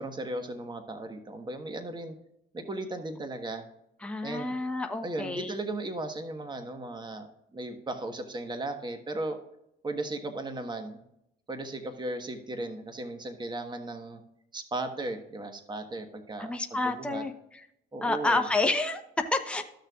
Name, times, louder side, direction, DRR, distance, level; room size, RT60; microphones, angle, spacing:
voice 1, 0.0-2.1 2.5-3.6 4.2-4.5 5.0-9.4 9.8-11.0 11.5-14.2 14.5-16.5 16.8-17.2 17.9-18.4, right 2 dB, 20° right, 6 dB, 1.3 m, -36 dB
voice 2, 4.0-5.5 16.4-17.3 18.0-19.6, left 2 dB, 5° left, 4 dB, 0.9 m, -29 dB
14.0 x 6.5 x 2.4 m, 0.80 s
cardioid pair, 90°, 20 cm